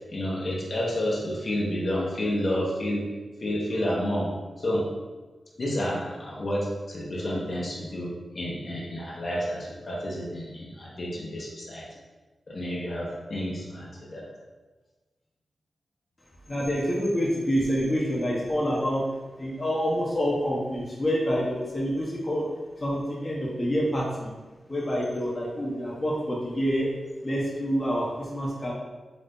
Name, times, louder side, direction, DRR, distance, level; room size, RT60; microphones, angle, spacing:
voice 1, 0.1-3.1 3.4-4.3 4.6-4.8 5.6-11.8 12.5-14.3, equal, 55° left, -5 dB, 1.0 m, -30 dB
voice 2, 16.5-19.0 19.4-22.5 22.8-24.3 24.7-26.9 27.2-28.7, equal, 30° left, -5 dB, 1.0 m, -27 dB
4.0 x 2.8 x 3.6 m, 1.3 s
cardioid pair, 60°, 0 cm